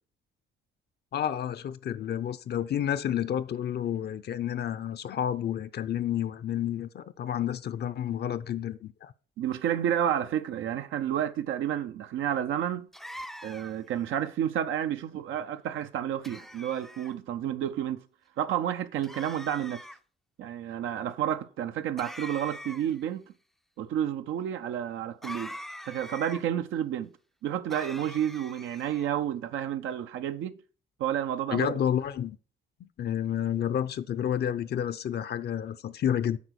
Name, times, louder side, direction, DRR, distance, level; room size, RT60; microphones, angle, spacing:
voice 1, 1.1-9.1 31.5-32.4 32.8-36.4, left 10 dB, 55° left, 0.6 m, -30 dB
voice 2, 9.4-12.9 13.4-18.0 18.4-19.8 20.4-23.2 23.8-25.5 25.8-27.1 27.4-30.6 31.0-31.7, right 10 dB, 80° right, 0.6 m, -30 dB
sound 1, 12.9-13.9 16.2-17.1 19.0-20.0 22.0-23.0 25.2-26.4 27.7-29.1, equal, ahead, 0.4 m, -43 dB
8.5 x 5.0 x 6.3 m
cardioid pair, 90°, 20 cm